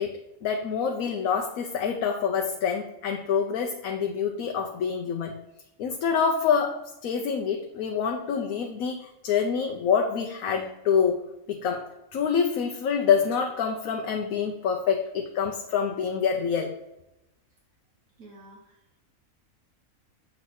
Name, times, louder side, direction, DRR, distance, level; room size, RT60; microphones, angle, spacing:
voice 1, 0.0-5.3 5.8-11.2 11.5-16.7, left 6 dB, 85° left, 2 dB, 1.1 m, -26 dB
voice 2, 18.2-19.0, right 2 dB, 90° right, -3 dB, 1.6 m, -50 dB
7.3 x 3.0 x 6.0 m, 0.89 s
omnidirectional pair, 1.4 m